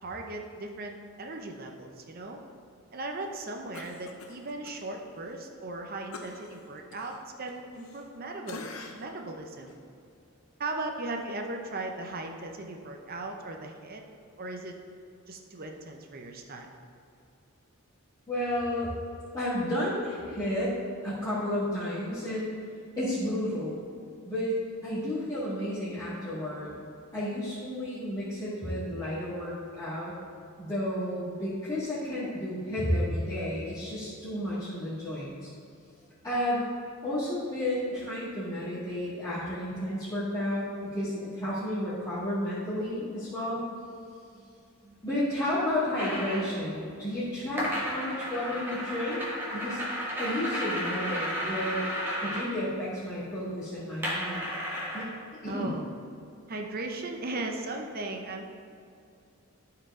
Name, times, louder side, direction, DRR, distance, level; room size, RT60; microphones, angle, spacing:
voice 1, 0.0-2.4 2.9-9.7 10.6-14.0 14.4-14.7 15.3-16.7 55.5-55.9 56.5-58.5, right 2 dB, 40° right, 3 dB, 0.7 m, -37 dB
Cough, 3.7-4.8 5.2-5.3 6.1-8.2 8.5-9.2 9.7-9.8, left 3 dB, 70° left, 0.7 m, -45 dB
voice 2, 18.3-18.9 19.3-20.7 21.0-22.6 23.0-23.8 24.2-26.7 27.1-30.1 30.6-35.5 36.2-36.6 37.0-43.6 44.8-49.2 49.5-49.8 50.2-51.8 52.2-54.4 54.9-55.1 55.4-55.7, left 1 dB, 20° left, -15 dB, 2.0 m, -32 dB
sound 1, 45.9-46.5 47.6-52.5 54.0-55.0, equal, 10° right, 1.3 m, -33 dB
12.5 x 4.8 x 3.7 m, 2.5 s
head